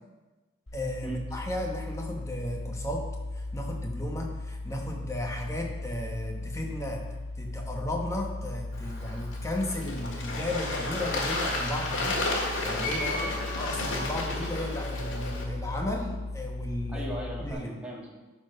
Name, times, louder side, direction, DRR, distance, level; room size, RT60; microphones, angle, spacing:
sound 1, 0.7-17.5, left 2 dB, 90° left, 1.6 m, -37 dB
voice 1, 0.7-3.1 3.4-7.0 7.4-13.2 13.6-17.1 17.4-17.7, left 1 dB, 15° left, 1 dB, 1.0 m, -34 dB
Bird / Water, 8.7-15.4, left 2 dB, 70° left, 1.8 m, -33 dB
sound 2, 10.6-11.8 12.8-15.8, left 2 dB, 45° left, 2.2 m, -39 dB
voice 2, 13.0-13.3 16.9-18.1, equal, 5° right, -4 dB, 1.4 m, -38 dB
12.5 x 4.3 x 5.3 m, 1.2 s
head